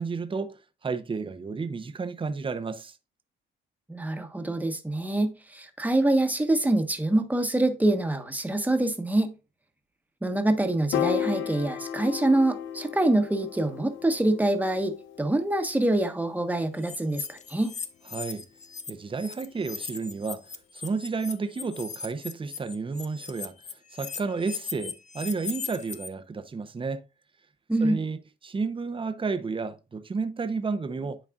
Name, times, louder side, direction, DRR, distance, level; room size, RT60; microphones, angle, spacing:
voice 1, 0.0-2.9 18.1-18.5 18.9-27.0 27.8-31.2, right 4 dB, 25° right, 0.8 m, -32 dB
voice 2, 3.9-9.3 10.2-17.7 27.7-28.0, right 1 dB, 10° right, 1.2 m, -25 dB
Piano, 10.9-17.3, left 9 dB, 75° left, 0.6 m, -34 dB
sound 1, 16.8-18.9 19.2-26.1, left 6 dB, 35° left, 0.8 m, -38 dB
10.5 x 4.1 x 2.5 m
cardioid pair, 90°, 20 cm